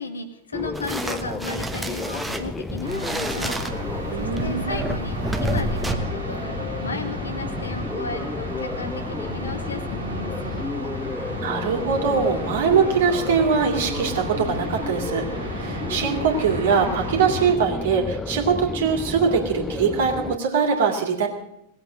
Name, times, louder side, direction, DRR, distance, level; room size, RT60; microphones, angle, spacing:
voice 1, 0.0-10.8, left 3 dB, 75° left, 7 dB, 1.6 m, -35 dB
sound 1, 0.5-20.4, left 3 dB, 10° left, 0.6 m, -32 dB
sound 2, 0.7-5.9, right 1 dB, 10° right, 1.2 m, -29 dB
sound 3, 2.8-17.5, right 1 dB, 85° right, 2.4 m, -34 dB
voice 2, 4.1-4.8 11.4-15.3 15.6-21.3, right 6 dB, 60° right, 3 dB, 2.7 m, -22 dB
18.0 x 8.1 x 8.5 m, 0.81 s
figure-of-eight pair, 90°, 0 cm